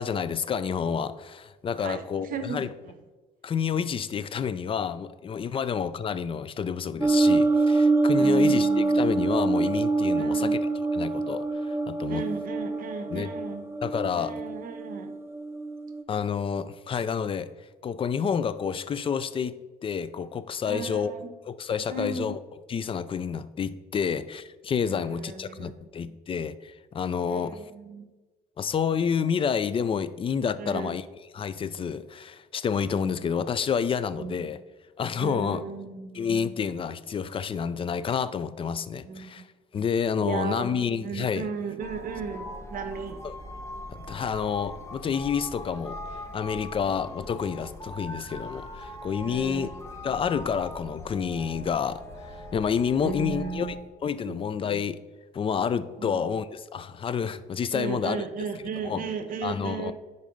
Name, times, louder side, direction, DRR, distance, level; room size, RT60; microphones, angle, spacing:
voice 1, 0.0-2.7 3.4-12.2 13.1-13.3 13.8-14.3 16.1-21.1 21.5-22.4 22.7-27.7 28.6-31.0 31.3-34.6 35.0-35.6 36.1-39.5 39.7-41.5 43.2-43.3 43.9-49.7 50.0-53.8 54.0-55.0 55.3-58.2 58.8-59.0 59.4-59.9, left 7 dB, 30° left, 15 dB, 0.5 m, -29 dB
voice 2, 1.8-3.0 5.5-5.6 8.2-9.0 10.2-10.6 12.1-13.7 14.2-15.1 20.7-21.3 21.9-22.3 24.8-25.7 27.3-28.1 30.6-30.9 34.2-34.5 35.2-36.4 39.0-39.4 40.2-43.2 46.8-46.9 49.2-49.7 53.0-53.7 54.2-54.4 56.0-56.2 57.7-59.9, right 6 dB, 55° right, 8 dB, 1.0 m, -35 dB
sound 1, 7.0-16.0, right 3 dB, 15° right, 0.7 m, -25 dB
sound 2, 41.8-53.8, left 2 dB, 15° left, 1.1 m, -41 dB
10.5 x 4.0 x 5.3 m, 1.2 s
cardioid pair, 110°, 17 cm